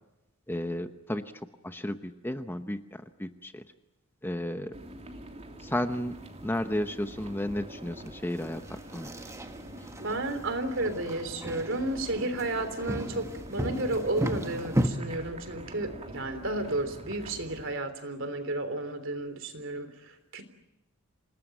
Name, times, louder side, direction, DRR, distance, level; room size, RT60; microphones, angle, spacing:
voice 1, 0.5-1.2 1.6-3.6 4.2-4.7 5.6-6.1 6.4-9.1, left 1 dB, 10° left, 8 dB, 0.9 m, -33 dB
sound 1, 4.7-17.7, right 1 dB, 30° right, 3.2 m, -45 dB
sound 2, 5.9-14.9, equal, 15° right, 1.5 m, -36 dB
voice 2, 10.0-20.4, right 2 dB, 60° right, 9 dB, 3.5 m, -32 dB
28.0 x 19.5 x 9.1 m, 0.92 s
head